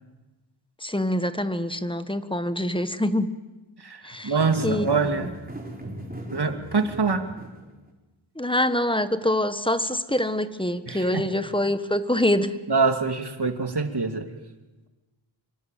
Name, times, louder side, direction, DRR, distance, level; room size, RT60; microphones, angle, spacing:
voice 1, 0.8-3.4 4.0-4.3 4.6-4.9 8.3-12.6, left 1 dB, 10° left, 11 dB, 1.5 m, -25 dB
voice 2, 3.8-5.3 6.3-7.3 10.9-11.3 12.7-14.3, right 4 dB, 55° right, 6 dB, 2.7 m, -25 dB
sound 1, 4.4-7.9, equal, 20° right, 5.1 m, -37 dB
26.5 x 24.0 x 9.3 m, 1.1 s
wide cardioid pair, 70°, 48 cm